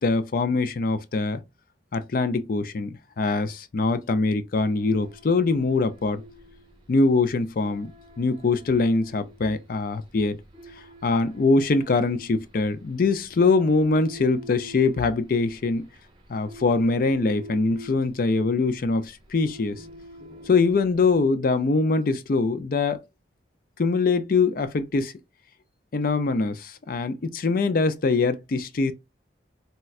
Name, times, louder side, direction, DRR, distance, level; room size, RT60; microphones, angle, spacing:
voice 1, 0.0-1.4 1.9-6.2 6.9-7.9 8.2-10.4 11.0-15.9 16.3-19.8 20.5-23.0 23.8-25.1 25.9-28.9, left 3 dB, 50° left, 0.4 m, -23 dB
sound 1, 4.6-21.2, equal, 25° right, 0.7 m, -47 dB
4.1 x 2.2 x 2.4 m
head